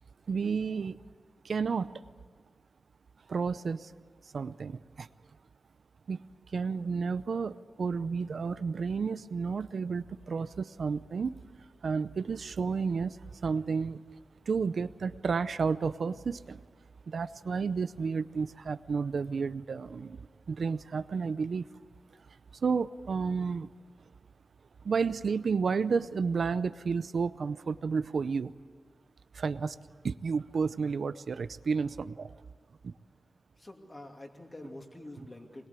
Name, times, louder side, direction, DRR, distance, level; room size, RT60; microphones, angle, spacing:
voice 1, 0.3-1.0 1.4-2.0 3.3-3.9 4.3-5.1 6.1-6.3 6.5-11.4 11.8-14.0 14.5-16.6 17.1-21.7 22.6-23.7 24.8-28.5 29.3-29.8 30.0-32.3 32.8-32.9, right 5 dB, 70° right, 14 dB, 0.6 m, -31 dB
voice 2, 33.6-35.7, left 1 dB, 30° left, 3 dB, 2.6 m, -47 dB
23.0 x 21.5 x 8.3 m, 1.5 s
wide cardioid pair, 120°, 0 cm